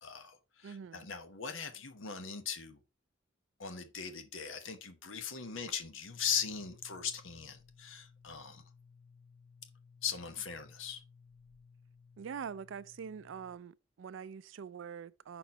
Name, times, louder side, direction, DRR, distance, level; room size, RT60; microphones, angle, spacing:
voice 1, 0.0-2.8 3.6-8.6 10.0-11.0, left 7 dB, 80° left, 1.1 m, -39 dB
voice 2, 0.6-1.1 12.2-15.4, right 7 dB, 70° right, 0.4 m, -44 dB
sound 1, 6.0-13.5, left 5 dB, 35° left, 2.0 m, -60 dB
5.9 x 4.4 x 5.4 m
head